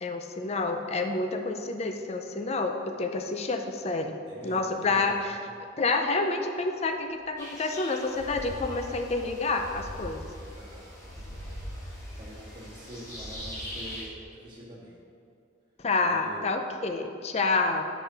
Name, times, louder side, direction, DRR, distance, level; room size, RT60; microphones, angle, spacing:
voice 1, 0.0-5.4 5.8-10.3 15.8-17.8, left 3 dB, 35° left, 5 dB, 0.5 m, -28 dB
voice 2, 4.2-5.1 10.3-11.6 12.1-14.9 16.1-16.4, equal, 25° right, -6 dB, 1.6 m, -46 dB
sound 1, 7.4-14.1, equal, 15° left, 1.5 m, -45 dB
sound 2, 7.5-7.6 8.0-14.2, equal, 85° left, 1.5 m, -43 dB
6.8 x 5.0 x 5.7 m, 2.5 s
head